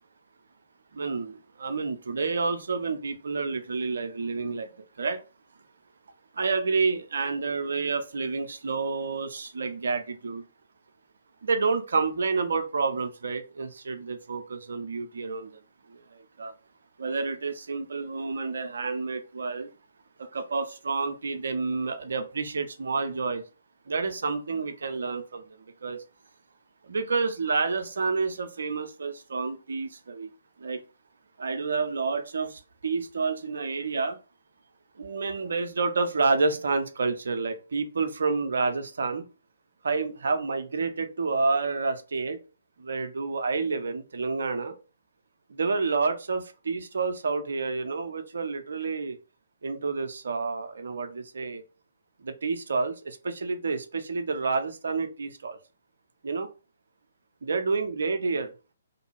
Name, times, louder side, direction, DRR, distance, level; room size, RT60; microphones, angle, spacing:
voice 1, 0.9-5.2 6.4-10.5 11.4-15.6 15.9-16.5 17.0-19.7 20.2-23.4 23.9-26.0 26.8-30.3 30.6-30.8 31.4-34.2 35.0-39.3 39.8-42.4 42.8-44.8 45.5-49.2 49.6-51.6 52.2-55.6 56.2-56.5 57.4-58.5, right 4 dB, 60° right, 0.5 m, -29 dB
2.6 x 2.2 x 3.1 m
figure-of-eight pair, 130°, 0 cm